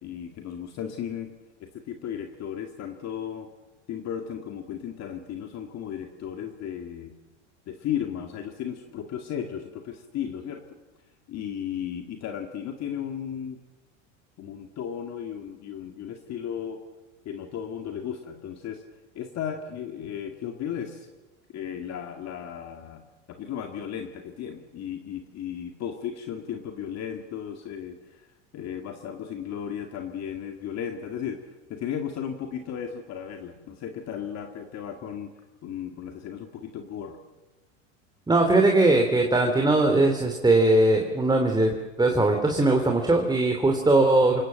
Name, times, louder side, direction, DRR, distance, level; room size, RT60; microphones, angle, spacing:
voice 1, 0.0-1.3 1.6-3.5 3.9-7.1 7.7-10.6 11.3-13.6 14.4-16.8 17.3-18.8 19.1-21.1 21.5-23.0 23.3-28.3 28.5-35.3 35.6-37.2, left 9 dB, 45° left, 5 dB, 2.2 m, -35 dB
voice 2, 38.3-41.7 42.0-44.4, right 2 dB, 10° right, 3 dB, 2.9 m, -20 dB
28.5 x 18.0 x 7.7 m, 1.1 s
hypercardioid pair, 100°, 37 cm